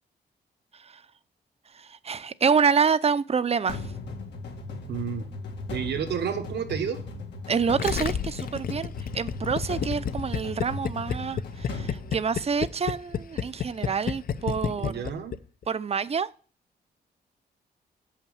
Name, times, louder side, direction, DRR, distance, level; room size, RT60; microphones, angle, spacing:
voice 1, 1.7-3.8 7.5-15.0 15.7-16.3, right 6 dB, 35° right, 0.6 m, -27 dB
sound 1, 3.7-12.9, left 3 dB, 90° left, 1.9 m, -37 dB
voice 2, 4.9-5.3 5.7-7.0 14.8-15.4, right 7 dB, 80° right, 1.4 m, -30 dB
Gurgling, 7.8-15.6, left 8 dB, 60° left, 0.6 m, -30 dB
7.2 x 5.8 x 7.1 m
cardioid pair, 80°, 17 cm